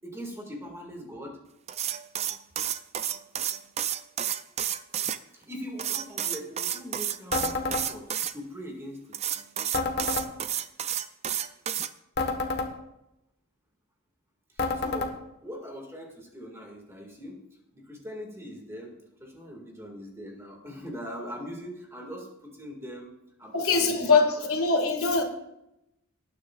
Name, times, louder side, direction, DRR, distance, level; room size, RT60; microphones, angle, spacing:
voice 1, 0.0-1.4 5.3-9.2 14.5-15.1 15.4-17.4 17.7-24.3, equal, 10° right, 0 dB, 2.0 m, -41 dB
sound 1, 1.7-5.2 5.8-8.3 9.1-11.9, right 10 dB, 30° right, 0.4 m, -30 dB
sound 2, 7.3-7.9 9.7-10.3 12.2-12.7 14.6-15.1, left 3 dB, 50° left, 1.3 m, -28 dB
voice 2, 23.5-25.2, left 4 dB, 85° left, 4 dB, 1.9 m, -23 dB
19.0 x 9.4 x 2.4 m, 0.85 s
head